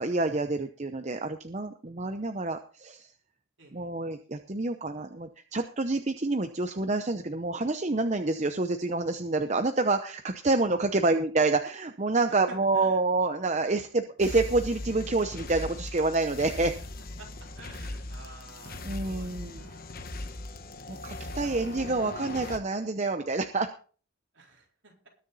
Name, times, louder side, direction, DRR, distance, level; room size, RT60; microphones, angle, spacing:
voice 1, 0.0-3.1 3.7-16.7 18.8-19.6 20.9-23.7, right 3 dB, 35° right, 7 dB, 0.7 m, -28 dB
voice 2, 3.6-3.9 10.9-11.0 12.3-13.0 13.6-13.8 17.2-17.3 17.6-19.8 24.3-25.1, right 2 dB, 60° right, 0 dB, 4.1 m, -51 dB
sound 1, 14.2-22.6, left 2 dB, 45° left, 1.2 m, -39 dB
20.5 x 6.9 x 4.1 m, 0.40 s
head